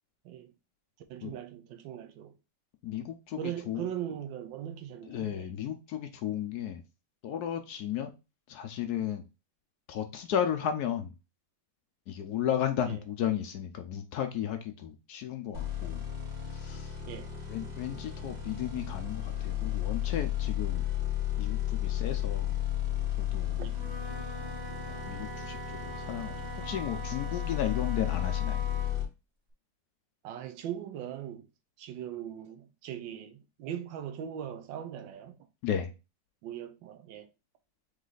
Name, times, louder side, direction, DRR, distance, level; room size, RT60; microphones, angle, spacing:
voice 1, 1.1-2.3 3.4-5.5 12.8-13.0 17.1-17.3 23.6-23.7 30.2-31.5 31.8-35.4 36.4-37.3, right 10 dB, 75° right, 1.4 m, -39 dB
voice 2, 2.8-3.8 5.1-6.8 7.2-8.1 8.5-9.2 9.9-11.1 12.1-16.0 16.5-17.0 17.5-20.8 21.4-22.6 23.2-23.6 24.8-28.6 35.6-35.9, left 9 dB, 70° left, 0.9 m, -34 dB
sound 1, 15.5-29.1, left 11 dB, 50° right, 2.2 m, -33 dB
Wind instrument woodwind instrument, 23.6-29.1, right 2 dB, 25° right, 1.4 m, -43 dB
4.1 x 3.2 x 3.9 m
omnidirectional pair, 2.1 m